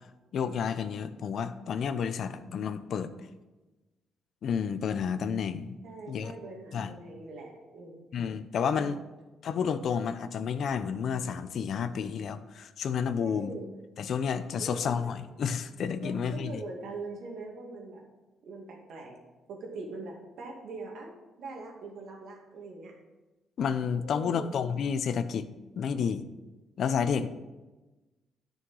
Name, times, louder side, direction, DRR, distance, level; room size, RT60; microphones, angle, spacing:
voice 1, 0.3-3.1 4.4-5.7 6.1-6.3 6.7-6.9 8.1-9.0 9.4-13.5 14.0-16.6 23.6-25.5 25.8-26.3 26.8-27.3, left 7 dB, 65° left, 11 dB, 0.6 m, -30 dB
voice 2, 5.8-8.1 8.8-9.1 13.2-13.7 14.6-15.0 16.0-18.0 18.4-19.2 19.5-21.1 21.4-22.9 24.0-24.5, right 3 dB, 75° right, 0 dB, 2.4 m, -42 dB
9.7 x 6.4 x 5.5 m, 1.1 s
cardioid pair, 90°, 0 cm